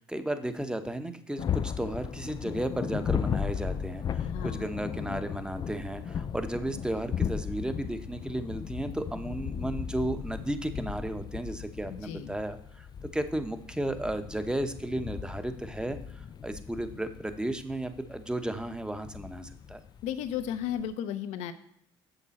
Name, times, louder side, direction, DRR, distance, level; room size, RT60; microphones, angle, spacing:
voice 1, 0.0-12.9 13.1-19.8, right 1 dB, 5° right, 8 dB, 1.0 m, -34 dB
sound 1, 1.4-20.9, left 8 dB, 35° left, 0.4 m, -36 dB
voice 2, 4.2-4.7 11.9-12.4 20.0-21.5, left 9 dB, 65° left, 10 dB, 0.8 m, -34 dB
7.1 x 6.9 x 4.2 m, 0.76 s
hypercardioid pair, 60°, 12 cm